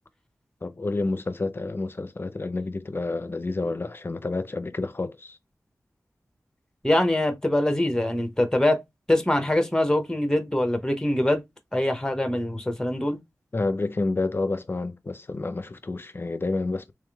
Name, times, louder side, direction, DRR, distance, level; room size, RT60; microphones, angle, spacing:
voice 1, 0.6-5.4 13.5-16.9, left 3 dB, 40° left, 0.5 m, -29 dB
voice 2, 6.8-8.8 9.1-11.4 11.7-13.2, left 1 dB, 10° left, 0.8 m, -23 dB
3.5 x 3.2 x 3.4 m
wide cardioid pair, 95°, 6 cm